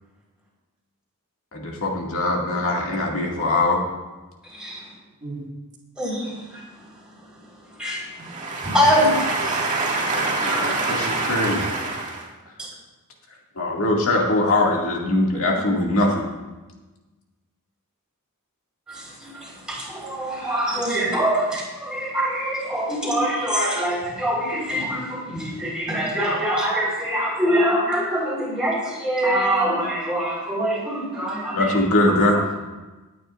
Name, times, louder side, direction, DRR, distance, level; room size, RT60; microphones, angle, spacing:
voice 1, 1.5-3.8 10.1-11.6 13.6-16.2 31.5-32.4, left 2 dB, 65° left, -1 dB, 2.3 m, -22 dB
voice 2, 4.5-4.8 6.0-6.6 7.7-8.0 8.6-9.7 12.6-12.7 18.9-31.8 32.3-32.6, equal, 5° right, -6 dB, 4.3 m, -24 dB
voice 3, 8.3-12.2 15.3-15.8 20.9-21.1, right 3 dB, 35° right, -3 dB, 2.1 m, -26 dB
23.5 x 9.3 x 2.6 m, 1.2 s
head